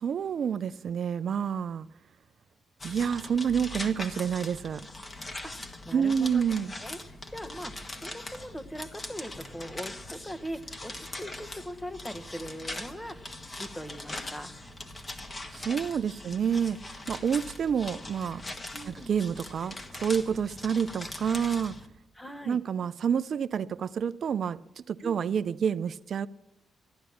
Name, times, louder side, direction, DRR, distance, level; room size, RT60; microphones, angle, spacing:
voice 1, 0.0-1.9 2.8-4.9 5.9-6.7 15.5-16.8 17.1-18.4 18.9-21.7 22.5-26.3, right 7 dB, 60° right, 0.4 m, -28 dB
sound 1, 2.8-21.9, left 2 dB, 30° left, 1.7 m, -41 dB
voice 2, 5.4-6.4 6.8-14.5 18.7-19.1 22.1-22.6 25.0-25.2, equal, 10° left, 1.2 m, -41 dB
14.0 x 10.5 x 7.1 m
cardioid pair, 75°, 0 cm